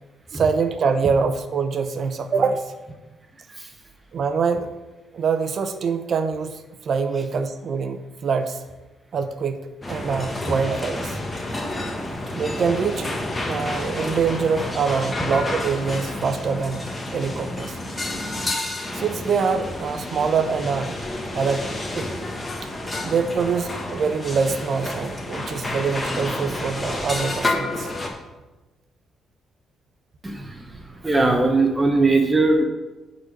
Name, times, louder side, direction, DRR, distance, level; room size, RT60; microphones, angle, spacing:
voice 1, 0.3-2.6 4.1-4.7 5.1-8.6 9.1-9.6 9.9-11.2 12.3-13.1 13.5-16.9 17.1-17.8 18.9-21.0 21.3-21.7 21.9-22.1 23.0-27.9, right 5 dB, 55° right, 9 dB, 0.8 m, -24 dB
sound 1, 9.8-28.1, left 1 dB, 20° left, 1.4 m, -30 dB
voice 2, 30.2-32.6, right 3 dB, 20° right, 4 dB, 1.0 m, -20 dB
9.2 x 4.1 x 6.6 m, 1.1 s
cardioid pair, 90°, 0 cm